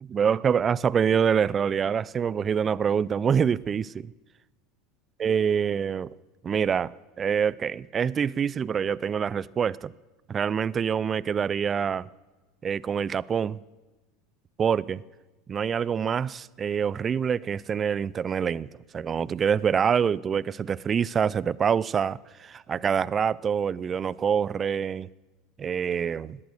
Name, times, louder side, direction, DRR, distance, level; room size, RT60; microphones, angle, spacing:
voice 1, 0.0-4.1 5.2-6.2 6.4-9.9 10.3-12.1 12.6-13.6 14.6-15.0 15.5-18.7 18.9-25.1 25.6-26.4, right 7 dB, 30° right, 0.4 m, -26 dB
18.0 x 11.0 x 6.4 m
hypercardioid pair, 85°, 0 cm